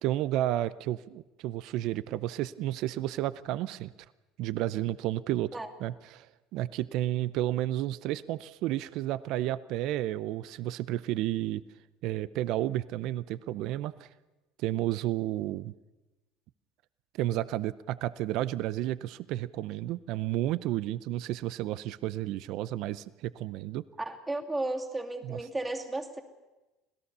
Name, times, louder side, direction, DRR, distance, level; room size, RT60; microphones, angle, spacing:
voice 1, 0.0-3.9 4.4-5.5 5.8-11.6 12.0-14.1 14.6-15.7 17.1-23.8 25.2-25.4, right 14 dB, 65° right, 17 dB, 0.6 m, -32 dB
voice 2, 24.0-26.2, right 2 dB, 15° right, 3 dB, 2.6 m, -34 dB
26.0 x 17.0 x 6.8 m, 1.1 s
supercardioid pair, 105°, 0 cm